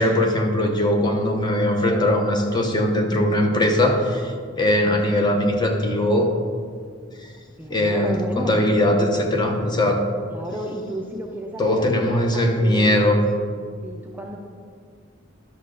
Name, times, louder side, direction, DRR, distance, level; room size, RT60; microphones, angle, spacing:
voice 1, 0.0-6.3 7.2-7.3 7.7-10.0 11.6-13.2, left 1 dB, 20° left, 3 dB, 0.9 m, -20 dB
voice 2, 7.6-8.6 10.3-13.4 13.8-14.4, right 1 dB, 10° right, 0 dB, 0.6 m, -32 dB
11.5 x 6.4 x 3.8 m, 2.1 s
head